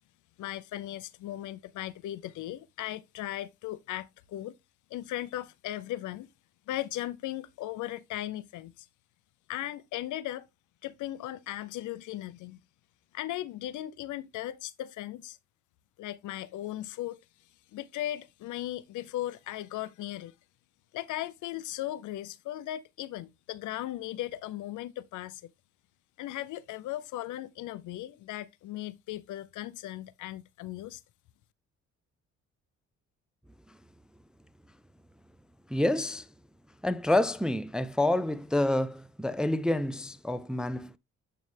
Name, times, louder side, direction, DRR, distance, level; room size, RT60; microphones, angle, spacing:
voice 1, 0.4-4.5 4.9-6.3 6.7-8.9 9.5-10.5 10.8-12.6 13.1-15.4 16.0-17.2 17.7-20.3 20.9-25.5 26.2-31.0, left 14 dB, 75° left, 0.6 m, -37 dB
voice 2, 35.7-36.2 36.8-41.0, left 1 dB, 5° right, 0.3 m, -28 dB
9.1 x 3.3 x 3.3 m
cardioid pair, 90°, 30 cm